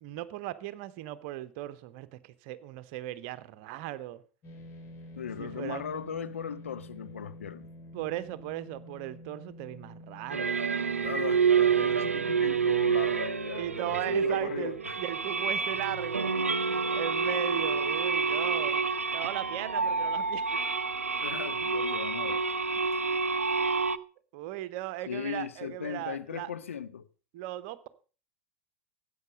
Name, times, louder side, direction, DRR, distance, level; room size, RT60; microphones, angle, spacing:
voice 1, 0.0-4.2 5.4-5.8 7.9-10.6 13.5-16.3 16.6-18.8 19.1-20.5 24.3-26.5 27.3-27.9, right 14 dB, 50° right, 0.9 m, -37 dB
sound 1, 4.4-18.9, equal, 35° left, 3.6 m, -50 dB
voice 2, 5.1-7.7 11.0-15.0 21.2-22.4 25.1-27.1, left 8 dB, 70° left, 0.9 m, -38 dB
sound 2, 10.3-24.0, right 5 dB, 80° right, 0.5 m, -28 dB
14.0 x 8.6 x 5.1 m
figure-of-eight pair, 80°, 7 cm